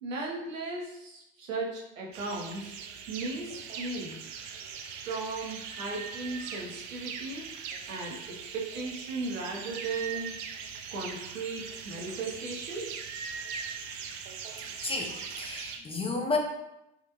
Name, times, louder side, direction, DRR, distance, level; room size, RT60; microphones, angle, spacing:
voice 1, 0.0-2.8 3.1-4.2 5.0-7.5 7.9-10.3 10.9-13.0, right 3 dB, 85° right, -2 dB, 0.7 m, -36 dB
sound 1, 2.1-15.8, right 6 dB, 50° right, 0.5 m, -41 dB
voice 2, 14.8-16.4, left 3 dB, 15° left, 0 dB, 0.6 m, -32 dB
3.5 x 2.4 x 2.8 m, 0.88 s
hypercardioid pair, 65°, 38 cm